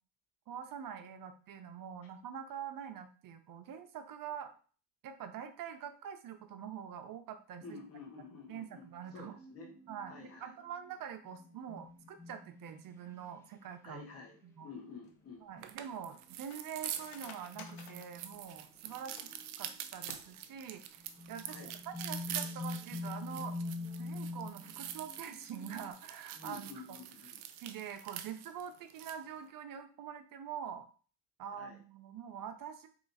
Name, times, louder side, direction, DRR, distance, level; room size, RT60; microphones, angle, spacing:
voice 1, 0.5-4.5 5.0-7.8 8.5-9.4 9.9-14.1 14.4-14.7 15.4-19.3 19.6-21.0 21.3-23.6 23.9-27.0 27.6-30.9 31.4-32.9, right 8 dB, 50° right, 7 dB, 0.7 m, -45 dB
voice 2, 7.6-8.8 9.1-9.7 10.1-10.5 13.8-15.4 21.5-21.7 26.3-27.3 31.6-31.8, left 4 dB, 30° left, -1 dB, 1.4 m, -50 dB
sound 1, 8.6-12.9 14.1-14.3 15.2-15.8 16.2-16.6 17.0-18.6 18.9-19.8 20.6-20.7 21.0-25.9, left 2 dB, 5° left, 0.7 m, -45 dB
Cutlery silverware, 15.0-19.5 20.0-20.7 21.0-21.1 21.4-21.8 22.1-22.3, left 7 dB, 85° left, 0.8 m, -55 dB
sound 2, 15.6-29.2, right 11 dB, 90° right, 0.6 m, -46 dB
3.1 x 3.0 x 4.0 m, 0.40 s
supercardioid pair, 95°, 44 cm